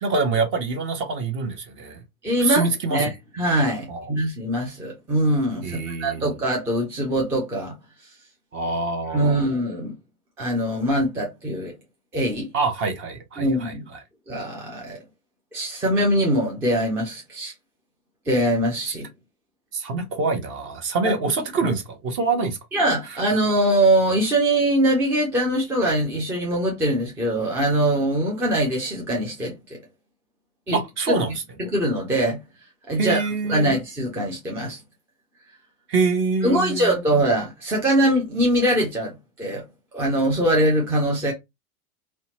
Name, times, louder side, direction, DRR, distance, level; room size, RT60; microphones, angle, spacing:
voice 1, 0.0-2.0 2.4-3.0 3.9-4.1 5.6-6.3 8.5-9.5 12.5-14.0 19.7-22.6 23.1-23.2 30.7-31.4 33.0-33.7 35.9-36.9, right 4 dB, 30° right, 0.7 m, -25 dB
voice 2, 2.2-3.1 3.4-7.7 9.1-9.9 10.4-11.7 12.1-12.5 13.4-13.8 14.3-15.0 15.5-17.5 18.3-19.1 21.0-21.1 22.7-29.8 30.7-30.8 31.1-31.2 31.6-32.4 32.9-34.8 36.4-39.6 39.9-41.3, right 1 dB, 5° right, 0.3 m, -22 dB
2.7 x 2.1 x 2.7 m
figure-of-eight pair, 90°, 43 cm